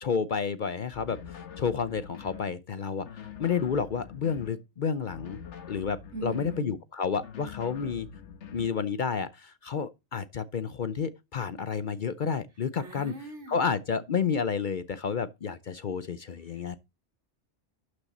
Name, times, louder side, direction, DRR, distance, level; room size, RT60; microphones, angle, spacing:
voice 1, 0.0-5.4 5.7-8.1 8.5-13.1 13.5-16.8, left 6 dB, 55° left, 0.7 m, -30 dB
sound 1, 0.9-2.5 3.0-4.6 5.1-6.7 7.2-8.8, left 7 dB, 75° left, 1.3 m, -45 dB
voice 2, 6.1-6.8 12.8-13.7 16.5-16.8, right 2 dB, 80° right, 2.9 m, -40 dB
12.0 x 6.4 x 4.1 m
omnidirectional pair, 1.2 m